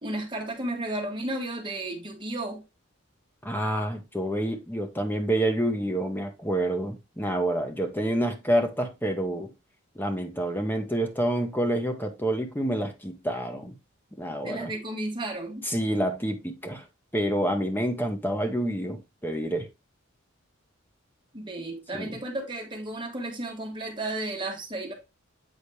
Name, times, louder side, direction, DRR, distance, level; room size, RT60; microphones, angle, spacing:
voice 1, 0.0-2.6 14.4-15.7 21.3-24.9, right 1 dB, 25° right, 1.5 m, -33 dB
voice 2, 3.4-9.5 9.9-13.7 14.2-14.7 15.6-16.9 17.1-19.7 21.9-22.1, right 1 dB, 10° left, 0.9 m, -28 dB
8.3 x 4.1 x 3.2 m
head